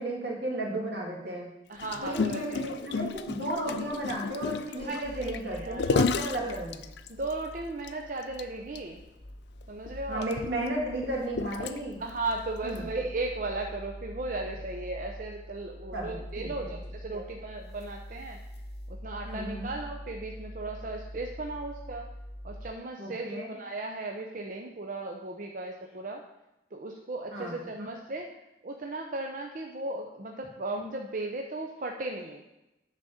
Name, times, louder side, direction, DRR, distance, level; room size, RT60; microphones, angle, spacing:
voice 1, 0.0-1.5 2.0-6.8 10.1-12.0 12.6-13.0 15.9-16.8 17.1-17.2 19.2-19.7 23.0-23.5 27.3-27.9, right 1 dB, 80° right, -2 dB, 2.3 m, -34 dB
voice 2, 1.7-2.7 4.8-6.5 7.1-9.0 9.7-10.3 12.0-18.4 18.9-22.1 22.4-26.2 26.7-28.3 28.6-32.4, right 2 dB, 50° right, 2 dB, 0.6 m, -36 dB
Gurgling, 1.8-7.3 7.8-7.9 8.2-8.4 8.8-8.9 9.6-12.1 12.8-12.9, left 4 dB, 75° left, 0.4 m, -32 dB
sound 1, 5.0-22.7, equal, 60° left, 1.5 m, -44 dB
9.6 x 4.1 x 6.4 m, 0.94 s
head